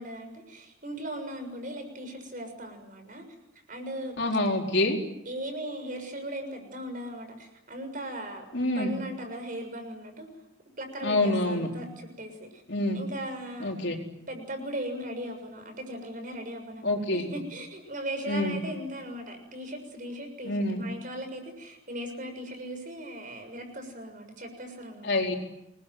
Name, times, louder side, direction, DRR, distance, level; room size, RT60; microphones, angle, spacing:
voice 1, 0.0-3.2 3.7-4.2 5.2-10.3 10.8-12.6 12.9-13.7 14.3-25.3, right 1 dB, 40° right, 6 dB, 6.7 m, -38 dB
voice 2, 4.2-5.0 8.5-8.9 11.0-11.7 12.7-13.0 13.6-14.0 16.8-17.3 18.3-18.6 20.4-20.8 25.0-25.4, left 1 dB, 55° left, 2 dB, 4.5 m, -26 dB
27.5 x 21.5 x 9.4 m, 0.86 s
head